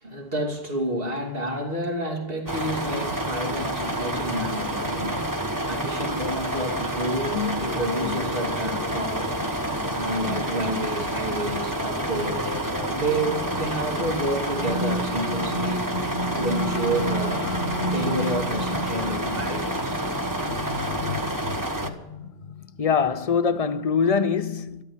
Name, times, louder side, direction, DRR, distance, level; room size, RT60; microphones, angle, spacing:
voice 1, 0.0-15.9 16.3-20.0 20.4-20.5, right 1 dB, 65° right, 3.0 m, -30 dB
sound 1, 2.5-21.9, right 1 dB, 20° right, 1.4 m, -29 dB
sound 2, 7.3-23.5, left 2 dB, 90° left, 0.9 m, -34 dB
voice 2, 22.8-24.8, left 6 dB, 40° left, 0.7 m, -23 dB
13.5 x 13.5 x 7.4 m
omnidirectional pair, 1.0 m